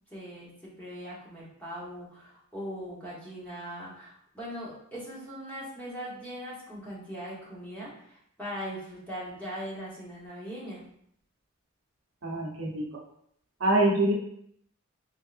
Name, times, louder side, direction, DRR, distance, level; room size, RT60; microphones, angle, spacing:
voice 1, 0.1-10.8, equal, 5° left, -7 dB, 1.0 m, -40 dB
voice 2, 12.2-12.8 13.6-14.1, right 1 dB, 65° right, -2 dB, 0.7 m, -24 dB
3.5 x 3.1 x 2.5 m, 0.70 s
head